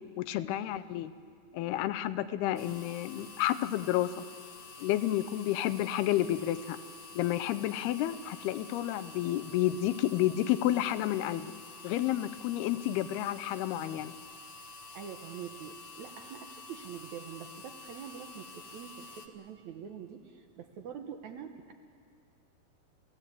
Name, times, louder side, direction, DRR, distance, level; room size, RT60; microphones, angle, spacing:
voice 1, 0.2-1.1 1.5-4.1 4.8-6.8 7.2-11.5 11.8-14.1, left 13 dB, 80° left, 13 dB, 2.6 m, -30 dB
sound 1, 2.6-19.3, left 3 dB, 60° left, 1.7 m, -49 dB
voice 2, 14.9-21.7, right 7 dB, 65° right, 6 dB, 1.9 m, -45 dB
29.5 x 16.5 x 8.4 m, 2.3 s
omnidirectional pair, 4.6 m